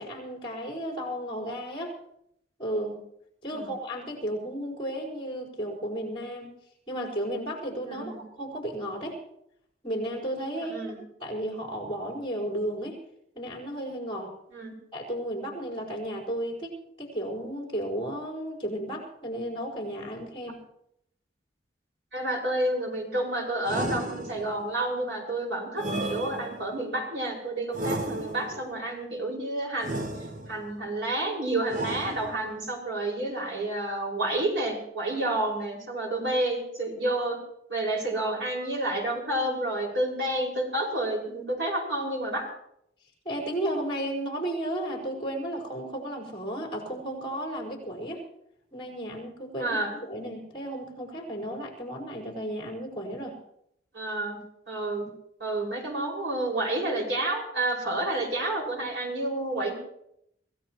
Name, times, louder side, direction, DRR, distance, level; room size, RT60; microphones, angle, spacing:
voice 1, 0.0-2.0 2.6-3.0 3.4-6.5 6.9-9.2 9.8-10.9 11.2-13.0 13.3-14.3 14.9-20.6 43.2-48.2 48.7-53.4, right 1 dB, 30° left, -3 dB, 4.8 m, -34 dB
voice 2, 7.8-8.2 10.6-11.0 14.5-14.7 22.1-30.0 30.5-37.4 37.7-42.4 49.6-49.9 53.9-54.4 54.7-55.1 55.4-59.7, right 1 dB, 85° right, -2 dB, 5.7 m, -30 dB
sound 1, 23.6-24.7 25.8-26.8 27.7-28.7 29.8-30.7 31.7-32.6, right 1 dB, 45° right, 1.1 m, -34 dB
25.5 x 17.0 x 3.1 m, 0.76 s
head